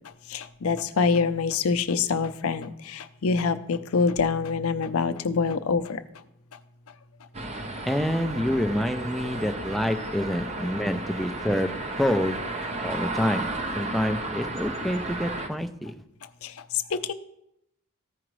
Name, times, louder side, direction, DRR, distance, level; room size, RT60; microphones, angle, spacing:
voice 1, 0.3-6.0 16.4-16.5 16.9-17.1, left 5 dB, 70° left, 11 dB, 0.5 m, -25 dB
sound 1, 7.3-15.5, right 2 dB, 30° right, 0.8 m, -33 dB
voice 2, 7.9-12.4 12.8-13.5 13.8-15.9, equal, ahead, 6 dB, 0.4 m, -27 dB
14.5 x 4.9 x 3.1 m, 0.79 s
head